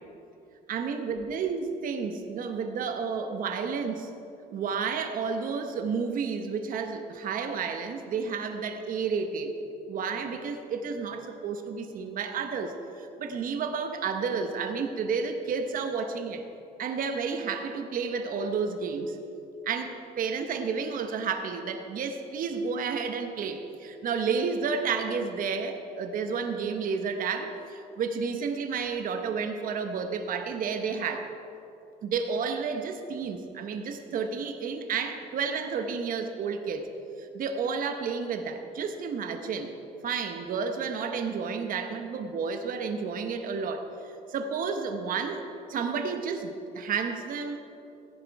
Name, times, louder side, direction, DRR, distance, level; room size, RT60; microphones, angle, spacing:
voice 1, 0.7-4.1 4.5-9.6 9.9-16.4 16.8-19.2 19.6-31.3 32.0-36.9 37.2-39.7 40.0-47.6, right 5 dB, 55° right, 6 dB, 1.0 m, -31 dB
14.5 x 10.5 x 4.7 m, 2.9 s
cardioid pair, 110°, 17 cm